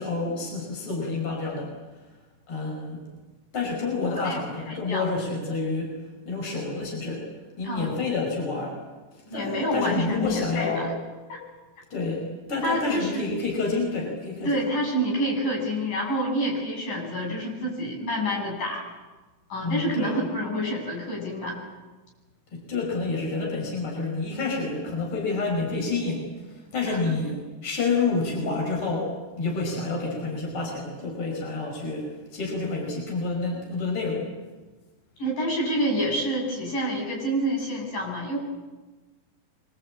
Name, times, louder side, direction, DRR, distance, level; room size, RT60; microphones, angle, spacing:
voice 1, 0.0-1.7 2.5-3.0 3.5-6.0 6.3-7.3 7.6-8.8 9.3-10.9 11.9-14.6 19.6-20.2 22.5-34.3, left 3 dB, 35° left, 0 dB, 6.2 m, -29 dB
voice 2, 4.2-5.1 7.6-7.9 9.3-10.9 11.3-11.4 12.6-13.3 14.4-18.8 19.5-21.6 26.9-27.1 35.2-38.4, equal, 65° left, -1 dB, 9.4 m, -28 dB
26.0 x 24.5 x 8.9 m, 1.2 s
omnidirectional pair, 4.2 m